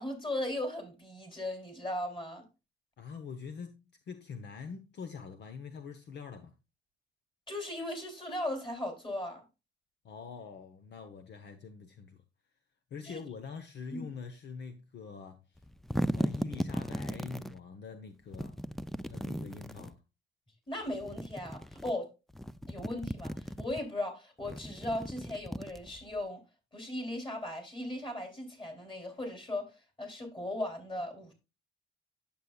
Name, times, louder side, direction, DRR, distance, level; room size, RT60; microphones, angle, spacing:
voice 1, 0.0-2.4 7.5-9.4 13.0-13.2 13.9-14.1 20.7-22.1 22.7-26.4 26.7-31.3, left 1 dB, 25° left, 3.3 m, -37 dB
voice 2, 3.0-6.5 10.0-12.2 12.9-15.6 16.1-18.6 19.0-20.0, left 5 dB, 60° left, 0.9 m, -45 dB
sound 1, 15.6-17.5 18.3-19.9 20.9-21.9 22.3-23.8 24.4-26.2, equal, ahead, 0.4 m, -36 dB
9.4 x 7.0 x 2.3 m
cardioid pair, 90°, 20 cm